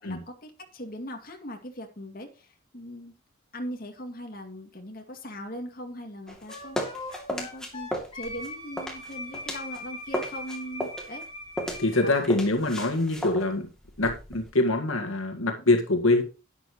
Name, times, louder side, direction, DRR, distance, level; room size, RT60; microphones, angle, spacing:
voice 1, 0.0-3.1 3.5-11.2 12.0-12.3, equal, 45° left, 3 dB, 2.4 m, -40 dB
sound 1, 6.3-9.8 10.1-14.5, equal, 5° left, 2.6 m, -35 dB
Wind instrument woodwind instrument, 6.5-12.1, left 2 dB, 25° left, 6.2 m, -40 dB
voice 2, 11.8-13.7 14.0-16.2, left 2 dB, 80° left, 3 dB, 1.9 m, -24 dB
12.0 x 10.0 x 3.1 m, 0.31 s
head